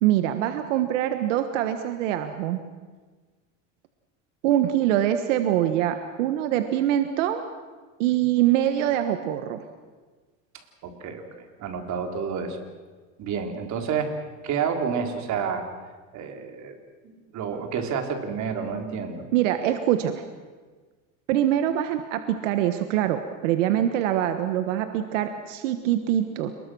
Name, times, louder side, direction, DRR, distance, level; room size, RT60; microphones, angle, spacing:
voice 1, 0.0-2.6 4.4-7.4 8.0-9.6 19.3-20.2 21.3-26.5, right 11 dB, 90° right, 8 dB, 1.5 m, -24 dB
voice 2, 10.8-12.6 13.2-14.1 14.4-15.6 16.1-16.8 17.0-19.3, right 6 dB, 50° right, 5 dB, 3.7 m, -29 dB
28.5 x 20.5 x 6.3 m, 1.4 s
supercardioid pair, 115°, 36 cm